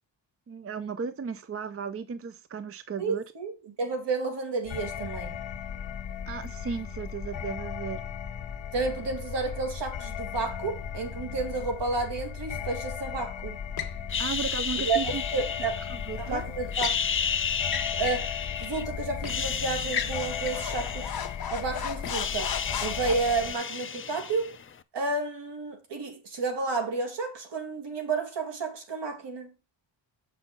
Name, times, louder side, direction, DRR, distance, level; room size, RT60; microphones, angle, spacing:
voice 1, 0.5-3.2 6.3-8.0 14.2-15.2 15.6-16.4, right 6 dB, 30° right, 0.5 m, -35 dB
voice 2, 3.0-5.4 8.7-13.6 14.8-15.8 16.2-17.0 18.0-21.1 21.5-24.5 24.9-29.5, right 4 dB, 65° right, 2.4 m, -31 dB
sound 1, 4.6-23.5, left 8 dB, 75° left, 1.6 m, -36 dB
sound 2, 13.8-14.0 16.2-17.0 17.6-18.3 18.6-18.7 19.2-19.4 19.8-23.1, left 8 dB, 50° left, 1.1 m, -36 dB
sound 3, 14.1-16.2 16.6-18.8 19.2-21.6 21.8-24.7, left 7 dB, 30° left, 0.4 m, -33 dB
6.9 x 6.2 x 5.2 m
wide cardioid pair, 140°, 46 cm